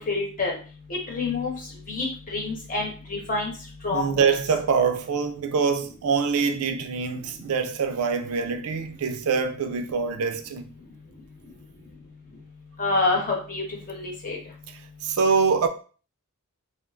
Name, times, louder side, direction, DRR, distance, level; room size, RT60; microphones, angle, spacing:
voice 1, 0.1-0.5 0.9-1.5 1.9-3.5 3.8-4.2 12.8-14.4, left 3 dB, 40° left, 1.0 m, -27 dB
voice 2, 3.9-10.7 15.0-15.7, right 5 dB, 75° right, 0.4 m, -24 dB
3.6 x 2.5 x 2.4 m
head